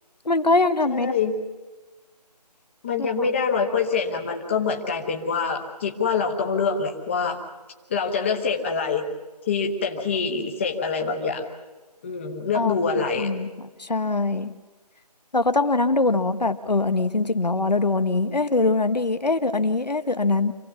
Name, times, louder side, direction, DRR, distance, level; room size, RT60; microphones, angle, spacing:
voice 1, 0.2-1.1 3.0-3.1 12.5-12.7 13.2-13.5 13.8-14.5 15.3-20.5, left 3 dB, 75° left, 11 dB, 1.3 m, -22 dB
voice 2, 0.9-1.3 2.8-7.4 7.9-9.1 9.5-11.4 12.0-13.3, left 5 dB, 20° left, 3 dB, 1.1 m, -25 dB
26.0 x 17.0 x 7.1 m, 1.2 s
figure-of-eight pair, 160°, 21 cm